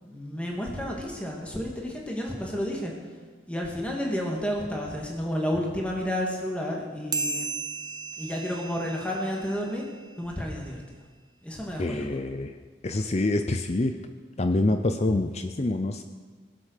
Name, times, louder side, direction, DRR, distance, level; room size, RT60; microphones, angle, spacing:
voice 1, 0.0-2.9 3.5-7.5 8.2-9.8 10.2-10.8 11.4-12.1, equal, 5° left, -2 dB, 2.2 m, -31 dB
sound 1, 7.1-10.0, right 3 dB, 20° right, 0.6 m, -35 dB
voice 2, 11.8-12.6 12.8-14.0 14.4-16.0, left 2 dB, 35° left, 8 dB, 0.5 m, -26 dB
21.0 x 8.0 x 6.6 m, 1.5 s
head